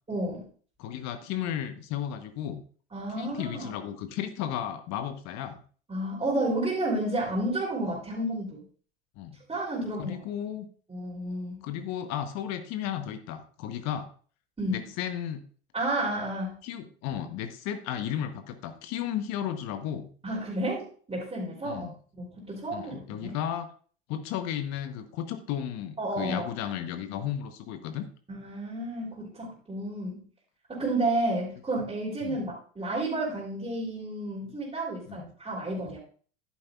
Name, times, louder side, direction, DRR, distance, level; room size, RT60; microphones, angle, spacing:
voice 1, 0.1-0.5 2.9-3.7 5.9-8.6 9.5-10.2 10.9-11.6 14.6-14.8 15.7-16.5 20.2-23.3 26.0-26.5 28.3-30.2 30.7-36.0, right 1 dB, 15° right, -7 dB, 3.1 m, -31 dB
voice 2, 0.8-2.6 3.2-5.6 9.2-9.4 10.0-10.7 11.6-14.1 14.7-15.4 16.6-20.1 21.6-21.9 22.7-23.7 24.1-28.1 32.2-32.4 35.1-35.3, left 10 dB, 55° left, 9 dB, 1.0 m, -34 dB
11.0 x 8.6 x 2.4 m, 0.43 s
hypercardioid pair, 70°, 32 cm